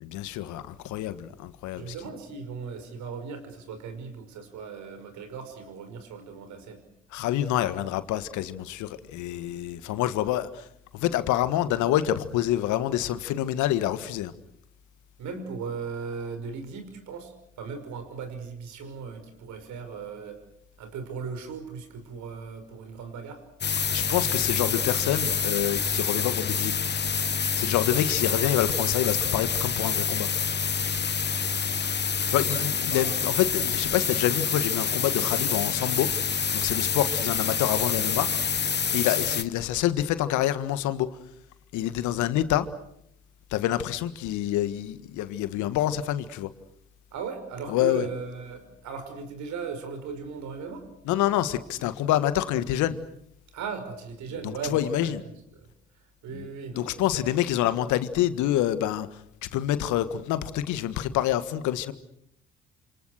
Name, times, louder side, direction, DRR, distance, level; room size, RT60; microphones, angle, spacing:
voice 1, 0.0-1.9 7.1-10.6 10.9-14.3 23.9-26.8 27.5-30.3 32.3-36.1 36.5-38.3 38.9-41.1 41.7-42.7 43.5-46.5 47.7-48.1 51.0-53.0 54.4-55.2 56.3-56.4 56.8-59.1 59.5-61.9, left 12 dB, 70° left, 13 dB, 1.7 m, -27 dB
voice 2, 1.8-6.8 15.2-20.4 20.8-23.4 32.5-33.1 47.1-50.8 53.5-55.1 55.5-55.7 56.2-57.2, right 5 dB, 65° right, 7 dB, 5.8 m, -37 dB
sound 1, 23.6-39.4, left 6 dB, 35° left, 1.2 m, -27 dB
29.0 x 27.5 x 6.5 m, 0.76 s
hypercardioid pair, 50°, 31 cm